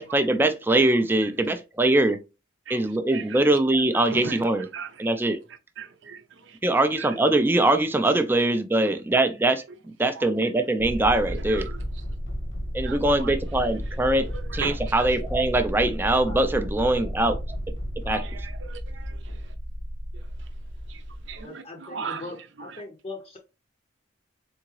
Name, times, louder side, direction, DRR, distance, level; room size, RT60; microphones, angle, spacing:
voice 1, 0.0-2.2 2.7-4.7 5.0-5.4 6.6-9.6 10.0-11.7 12.7-17.6 18.0-18.2, right 2 dB, 10° right, 0.4 m, -22 dB
voice 2, 4.0-4.4 4.7-4.9 5.8-6.2 7.0-7.1 11.7-11.8 12.8-13.0 14.1-14.8 18.1-19.2 20.9-21.0 21.3-22.2, right 5 dB, 65° right, 0.6 m, -36 dB
sound 1, 10.8-21.4, equal, 65° left, 1.0 m, -33 dB
voice 3, 21.4-23.4, left 2 dB, 30° left, 0.6 m, -40 dB
3.8 x 3.6 x 3.1 m
head